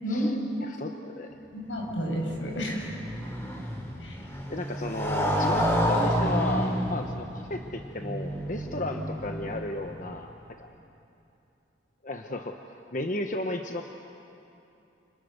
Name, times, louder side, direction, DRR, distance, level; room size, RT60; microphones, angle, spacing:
voice 1, 0.0-0.8 1.5-2.9 4.0-4.2, equal, 85° left, 0 dB, 6.8 m, -31 dB
voice 2, 0.6-1.4 4.5-10.7 12.0-13.8, left 2 dB, 45° left, 4 dB, 1.1 m, -34 dB
Motorcycle, 1.8-9.9, equal, 15° left, 4.1 m, -30 dB
29.5 x 29.0 x 6.7 m, 2.8 s
head